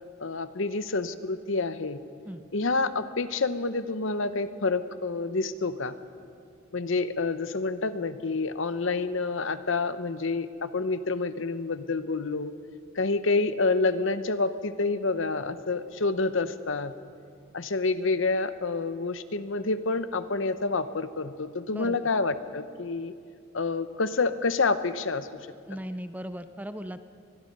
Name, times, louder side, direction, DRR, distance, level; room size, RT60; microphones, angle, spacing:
voice 1, 0.2-2.0 2.5-5.9 6.7-12.5 12.9-16.9 17.5-23.1 23.5-25.3, left 3 dB, 65° left, 12 dB, 0.9 m, -28 dB
voice 2, 21.7-22.1 25.7-27.0, equal, 10° right, 10 dB, 0.6 m, -37 dB
24.0 x 21.0 x 5.4 m, 2.4 s
head